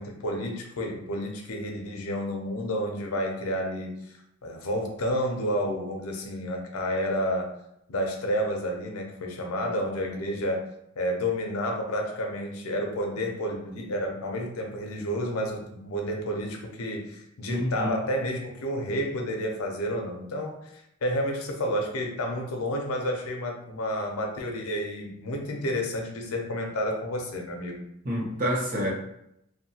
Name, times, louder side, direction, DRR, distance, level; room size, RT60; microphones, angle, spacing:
voice 1, 0.0-3.9 4.4-7.5 7.9-10.7 11.0-20.6 21.0-27.8, equal, 80° left, 2 dB, 0.6 m, -30 dB
voice 2, 17.5-17.9 28.0-28.9, equal, 40° right, -3 dB, 0.7 m, -28 dB
2.7 x 2.2 x 2.7 m, 0.77 s
head